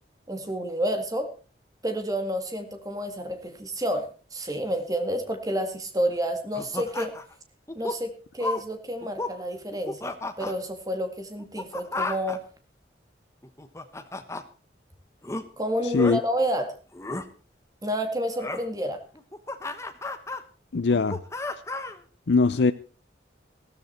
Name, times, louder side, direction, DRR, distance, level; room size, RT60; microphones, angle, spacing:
voice 1, 0.3-1.3 1.8-7.1 7.8-10.1 10.4-12.4 15.6-16.7 17.8-19.0, equal, 20° right, 2.1 m, -29 dB
sound 1, 6.5-7.3 7.7-8.0 8.4-8.6 9.0-9.3 9.7-10.5 11.4-12.4 13.4-14.4 15.2-15.4 16.0-16.2 16.9-17.3 18.4-18.6 19.2-20.4 20.9-22.0, left 2 dB, 15° left, 1.1 m, -33 dB
voice 2, 20.7-21.2 22.3-22.7, left 4 dB, 80° left, 0.6 m, -21 dB
15.0 x 13.5 x 4.4 m
head